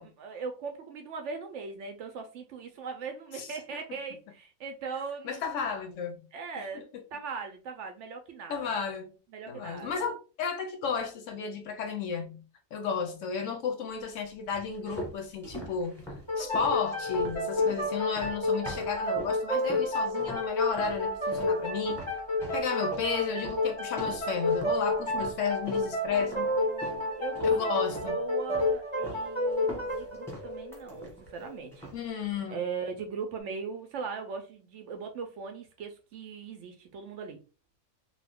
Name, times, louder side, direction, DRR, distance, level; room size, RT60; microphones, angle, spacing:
voice 1, 0.0-5.7 6.3-6.9 7.1-8.7 9.3-10.1 17.6-17.9 26.1-32.2 32.5-37.4, right 5 dB, 65° right, 0.8 m, -40 dB
voice 2, 5.2-6.3 8.5-9.1 9.5-12.4 12.7-16.0 16.4-22.0 22.5-26.5 27.5-28.2 31.9-32.6, left 6 dB, 65° left, 0.8 m, -33 dB
sound 1, 14.5-19.4 19.7-20.5 20.8-27.0 27.3-28.2 28.5-29.3 29.5-31.4 31.7-32.1, equal, ahead, 1.1 m, -43 dB
sound 2, 16.3-31.6, left 2 dB, 25° left, 0.9 m, -30 dB
2.7 x 2.3 x 3.4 m
omnidirectional pair, 1.5 m